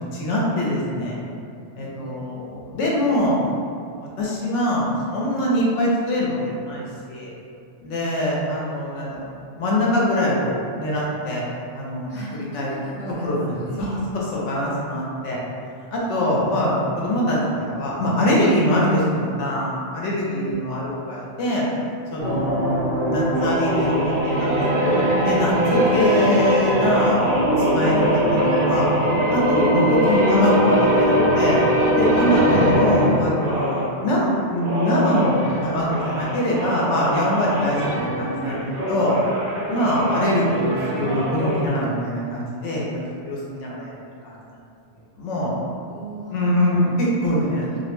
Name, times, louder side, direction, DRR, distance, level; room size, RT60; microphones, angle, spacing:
voice 1, 0.1-1.2 1.8-3.4 4.0-7.3 7.8-11.4 11.7-12.1 12.5-12.7 13.2-15.4 15.9-21.7 22.1-27.2 27.6-28.2 28.7-28.9 29.3-31.6 32.0-39.2 39.7-43.9 44.2-44.4 45.2-45.5 46.3-47.7, left 1 dB, 80° left, -5 dB, 0.9 m, -23 dB
voice 2, 1.7-2.2 7.9-8.2 12.1-14.1 16.0-16.3 20.3-20.6 22.2-22.5 32.3-32.6 39.7-39.9 45.7-46.9 47.6-47.8, right 3 dB, 45° left, -7 dB, 0.7 m, -37 dB
sound 1, 22.2-33.9 34.5-41.7, equal, 60° right, 0.6 m, -21 dB
2.4 x 2.0 x 3.0 m, 2.4 s
omnidirectional pair, 1.2 m